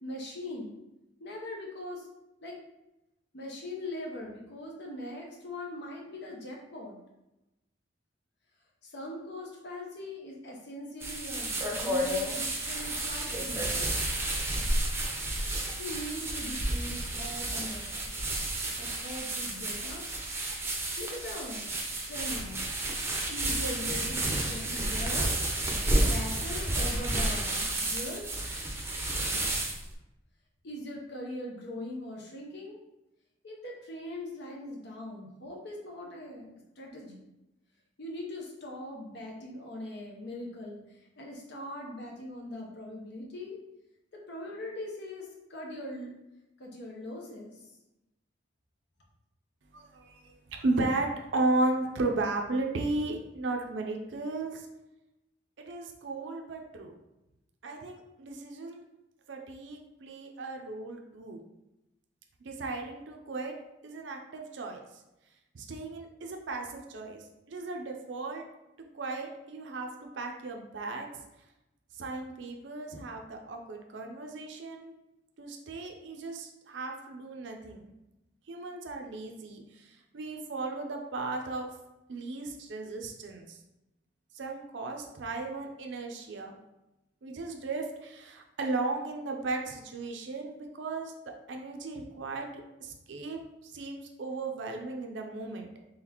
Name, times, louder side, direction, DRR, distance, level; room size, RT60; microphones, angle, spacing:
voice 1, 0.0-0.7 1.2-2.1 2.4-2.6 3.3-7.0 8.8-14.0 15.8-18.1 18.8-20.1 21.0-22.6 23.3-25.4 25.9-28.3 30.6-32.8 33.4-36.5 36.8-37.2 38.0-43.6 44.1-46.1 46.6-47.7, left 1 dB, 65° left, -1 dB, 0.8 m, -41 dB
sound 1, 11.0-29.9, right 1 dB, 15° right, 0.6 m, -31 dB
voice 2, 49.7-54.7 55.6-56.9 57.6-58.9 59.3-61.4 62.4-63.5 63.8-64.8 65.5-68.4 68.9-69.9 70.2-71.1 72.0-75.0 75.4-77.9 78.5-81.7 82.1-83.6 84.3-86.5 87.2-91.1 91.5-95.7, right 2 dB, 70° right, 2 dB, 0.5 m, -35 dB
4.0 x 3.4 x 2.9 m, 0.94 s
head